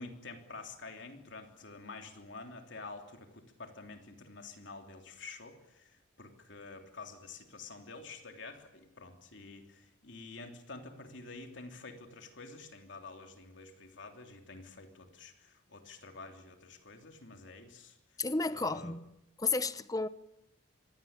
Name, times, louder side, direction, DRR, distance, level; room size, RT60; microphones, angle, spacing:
voice 1, 0.0-18.0 18.5-18.9, left 3 dB, 65° left, 3.3 m, -48 dB
voice 2, 18.2-19.1 19.4-20.1, left 3 dB, 20° left, 0.8 m, -32 dB
25.0 x 18.0 x 8.9 m
head